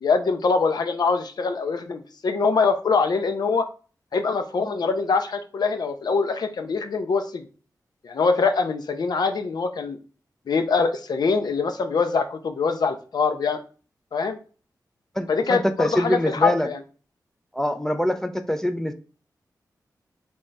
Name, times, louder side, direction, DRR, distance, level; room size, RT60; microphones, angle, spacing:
voice 1, 0.0-3.7 4.1-7.5 8.0-10.0 10.5-13.6 14.1-14.4 15.3-16.8, left 4 dB, 75° left, 7 dB, 0.6 m, -23 dB
voice 2, 15.2-16.7 17.5-18.9, equal, 5° left, 7 dB, 0.4 m, -24 dB
4.0 x 3.5 x 3.2 m, 0.37 s
wide cardioid pair, 95°, 7 cm